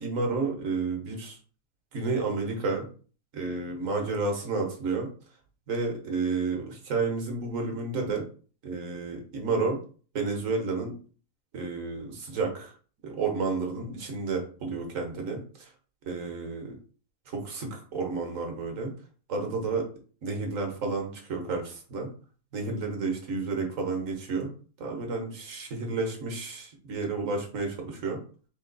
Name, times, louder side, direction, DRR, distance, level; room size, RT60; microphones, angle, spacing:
voice 1, 0.0-1.4 1.9-2.9 3.3-5.1 5.7-8.2 8.6-9.8 10.1-10.9 11.5-12.7 13.0-15.7 16.1-16.8 17.3-18.9 19.3-19.9 20.2-22.1 22.5-24.5 24.8-28.2, right 4 dB, 75° right, 2 dB, 1.4 m, -31 dB
3.7 x 2.9 x 3.9 m, 0.41 s
omnidirectional pair, 1.4 m